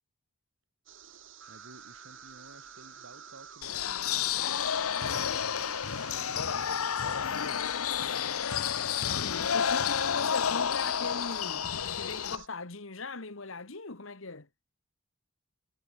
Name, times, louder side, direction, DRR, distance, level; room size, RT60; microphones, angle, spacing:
sound 1, 0.9-12.5, right 8 dB, 65° right, 3.4 m, -50 dB
voice 1, 1.5-4.5 5.0-7.5, right 2 dB, 80° right, 3.4 m, -55 dB
sound 2, 3.6-12.4, left 8 dB, 90° left, 0.8 m, -30 dB
voice 2, 9.0-11.7 11.9-14.5, left 3 dB, 70° left, 1.7 m, -39 dB
head